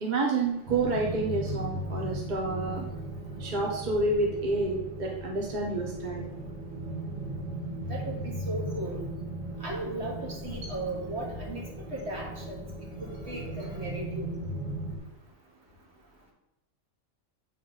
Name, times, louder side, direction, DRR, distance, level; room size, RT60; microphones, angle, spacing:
voice 1, 0.0-2.8 3.4-6.3, right 3 dB, 40° right, -1 dB, 1.0 m, -29 dB
sound 1, 0.7-15.0, right 1 dB, 80° right, 2.2 m, -37 dB
voice 2, 7.9-9.0 9.6-11.6 11.9-12.6 13.3-14.4, right 2 dB, 55° right, -2 dB, 2.0 m, -36 dB
8.4 x 3.5 x 5.4 m, 0.93 s
omnidirectional pair, 1.3 m